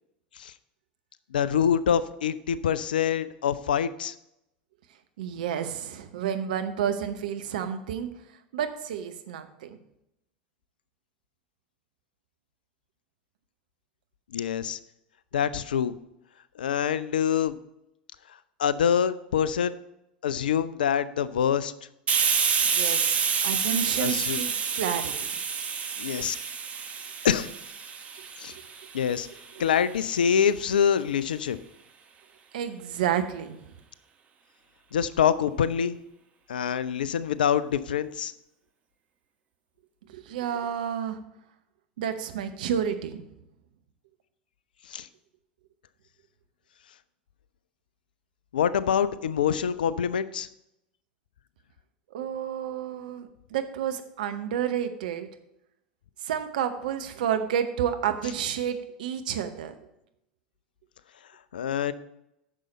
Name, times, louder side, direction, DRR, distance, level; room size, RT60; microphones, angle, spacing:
voice 1, 1.3-4.1 14.3-14.8 15.3-15.9 16.6-17.6 18.6-19.8 20.2-21.7 24.0-24.4 26.0-26.4 27.2-27.5 28.4-28.5 28.9-29.3 29.6-31.6 34.9-36.0 36.5-38.3 44.9-45.1 48.5-50.5 61.5-61.9, left 8 dB, 70° left, 16 dB, 0.4 m, -25 dB
voice 2, 5.2-8.1 8.5-9.8 22.6-23.1 23.4-25.3 32.5-33.6 40.1-41.2 42.0-43.3 52.1-55.3 56.2-59.7, right 9 dB, 60° right, 8 dB, 0.9 m, -30 dB
Hiss, 22.1-29.5, right 6 dB, 25° right, 1.1 m, -28 dB
9.9 x 6.6 x 4.2 m, 0.83 s
figure-of-eight pair, 80°, 5 cm